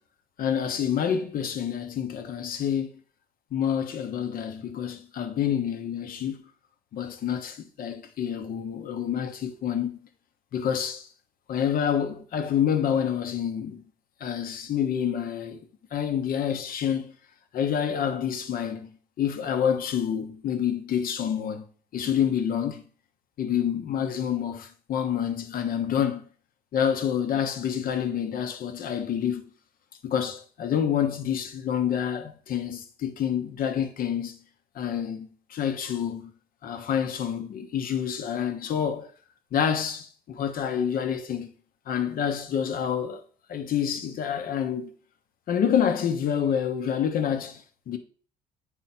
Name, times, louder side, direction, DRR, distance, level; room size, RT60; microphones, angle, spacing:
voice 1, 0.4-3.0 3.5-6.4 6.9-10.0 10.5-11.1 11.5-13.8 14.2-15.6 15.9-17.1 17.5-18.9 19.2-21.6 21.9-22.8 23.4-26.2 26.7-29.4 30.0-34.4 34.7-36.3 36.6-39.1 39.5-41.5 41.9-43.2 43.5-44.9 45.5-47.6 47.9-48.0, left 8 dB, 60° left, 1.1 m, -28 dB
8.8 x 4.8 x 4.4 m
cardioid pair, 110°, 17 cm